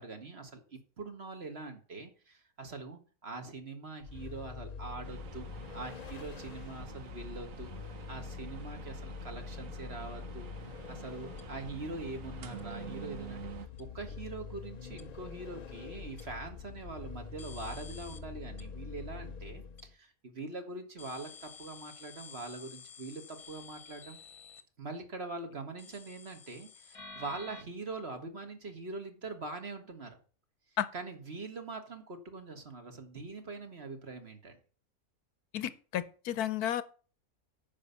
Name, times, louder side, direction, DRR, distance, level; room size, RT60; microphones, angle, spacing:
voice 1, 0.0-5.5 5.7-13.5 13.8-24.2 24.8-30.2 30.9-34.6, right 3 dB, 45° right, 1.8 m, -43 dB
Vehicle, 4.0-19.9, left 5 dB, 55° left, 0.4 m, -45 dB
sound 1, 5.0-13.7, right 7 dB, 65° right, 1.3 m, -48 dB
sound 2, 11.4-11.5 12.6-12.7 13.8-13.9 15.0-15.1 16.2-16.3 17.4-18.2 18.6-18.7 19.8-19.9 21.0-24.6 25.8-27.6, left 5 dB, 25° left, 1.1 m, -51 dB
voice 2, 35.5-36.8, left 11 dB, 85° left, 1.3 m, -32 dB
9.6 x 5.6 x 7.0 m
omnidirectional pair, 1.6 m